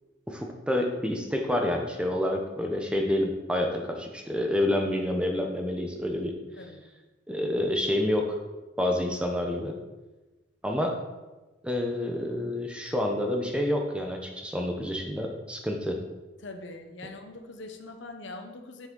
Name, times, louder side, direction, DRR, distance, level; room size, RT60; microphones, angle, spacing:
voice 1, 0.3-6.3 7.3-8.4 8.8-9.7 10.6-11.0 11.6-16.0, left 1 dB, 5° right, 2 dB, 0.7 m, -28 dB
voice 2, 16.4-18.9, left 2 dB, 65° left, 5 dB, 0.8 m, -42 dB
7.4 x 6.2 x 3.8 m, 1.1 s
head